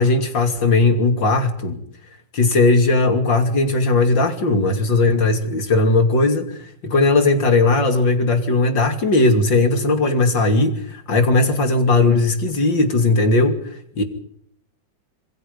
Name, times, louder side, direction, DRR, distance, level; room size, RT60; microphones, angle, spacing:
voice 1, 0.0-1.8 2.3-6.6 6.8-13.6 14.0-14.1, left 3 dB, 80° left, 8 dB, 3.6 m, -17 dB
27.0 x 21.5 x 5.5 m, 0.66 s
omnidirectional pair, 2.0 m